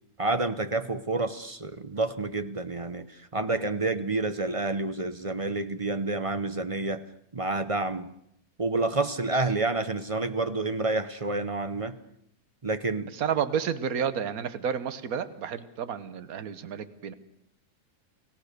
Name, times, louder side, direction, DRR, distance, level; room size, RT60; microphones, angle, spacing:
voice 1, 0.2-3.0 3.3-7.1 7.3-8.1 8.6-12.0 12.6-13.1, right 3 dB, 30° right, 11 dB, 0.6 m, -29 dB
voice 2, 13.2-17.1, right 8 dB, 65° right, 13 dB, 1.6 m, -30 dB
30.0 x 17.0 x 6.7 m, 0.76 s
omnidirectional pair, 1.7 m